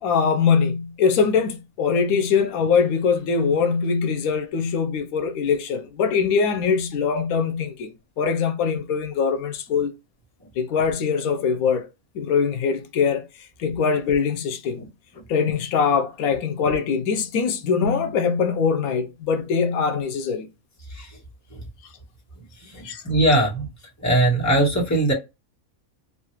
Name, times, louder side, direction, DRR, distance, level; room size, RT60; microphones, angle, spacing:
voice 1, 0.0-9.9 10.6-11.9 12.1-13.3 13.6-14.8 15.3-20.5 22.8-23.0, left 6 dB, 85° left, 1.0 m, -22 dB
voice 2, 22.6-23.7 24.0-25.1, right 1 dB, 15° left, 1.1 m, -20 dB
3.0 x 2.4 x 2.9 m
omnidirectional pair, 1.5 m